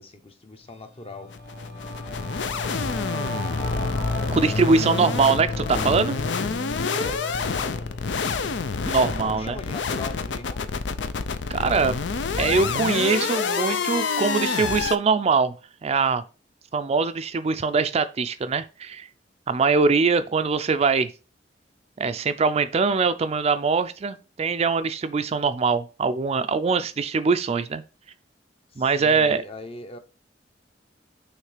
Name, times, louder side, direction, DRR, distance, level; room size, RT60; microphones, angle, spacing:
voice 1, 0.0-1.3 6.9-8.1 9.0-10.7 28.7-30.0, left 2 dB, 35° left, 0.8 m, -39 dB
Singing / Musical instrument, 0.8-10.5, left 2 dB, 65° left, 2.7 m, -33 dB
sound 1, 1.3-15.0, left 5 dB, 80° left, 0.5 m, -28 dB
voice 2, 4.3-6.2 8.9-9.6 11.5-12.0 12.4-15.5 15.8-16.2 16.7-19.1 19.5-21.1 22.0-27.8 28.8-29.4, right 4 dB, 35° right, 0.4 m, -22 dB
6.5 x 3.2 x 4.9 m
head